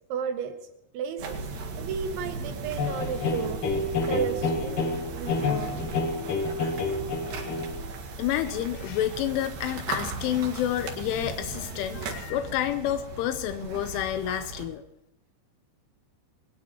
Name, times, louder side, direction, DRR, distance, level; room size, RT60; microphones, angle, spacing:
voice 1, 0.1-0.5 0.9-1.4 1.8-3.6 4.1-5.8, right 7 dB, 75° right, 5 dB, 3.9 m, -33 dB
sound 1, 1.2-14.7, right 4 dB, 55° right, 3.2 m, -37 dB
sound 2, 2.8-7.8, left 3 dB, 55° left, 2.9 m, -29 dB
voice 2, 8.2-14.8, left 12 dB, 85° left, 9 dB, 3.2 m, -29 dB
22.0 x 19.5 x 3.0 m, 0.89 s
omnidirectional pair, 5.6 m